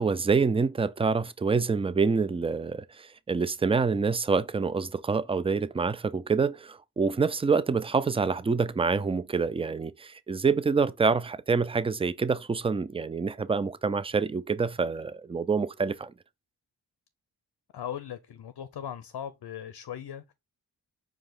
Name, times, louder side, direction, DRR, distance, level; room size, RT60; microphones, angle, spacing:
voice 1, 0.0-16.1, right 5 dB, 15° right, 0.3 m, -26 dB
voice 2, 17.7-20.3, left 9 dB, 60° left, 0.6 m, -38 dB
4.8 x 2.4 x 3.7 m
cardioid pair, 40°, 45 cm